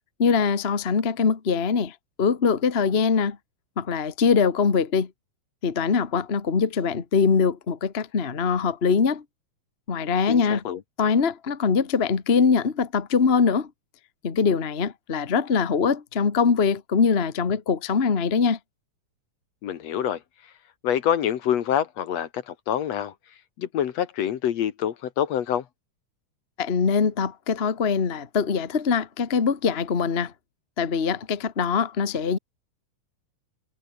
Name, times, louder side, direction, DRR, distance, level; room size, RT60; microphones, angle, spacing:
voice 1, 0.2-3.4 3.8-5.1 5.6-9.2 9.9-10.6 11.0-13.7 14.2-18.6 26.6-30.3 30.8-32.4, left 5 dB, 30° left, 1.2 m, -23 dB
voice 2, 10.3-10.8 19.6-20.2 20.8-23.1 23.6-25.7, left 10 dB, 65° left, 2.3 m, -26 dB
omnidirectional pair, 3.5 m